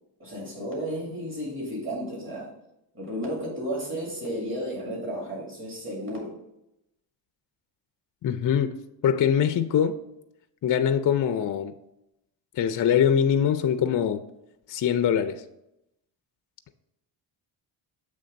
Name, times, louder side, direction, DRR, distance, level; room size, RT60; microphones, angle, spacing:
voice 1, 0.2-2.5 2.9-6.4, equal, 25° right, 2.5 m, -33 dB
voice 2, 8.2-8.8 9.0-10.0 10.6-11.7 12.5-14.2 14.7-15.4, left 8 dB, 45° left, 0.5 m, -23 dB
7.8 x 3.3 x 5.1 m
cardioid pair, 95°, 48 cm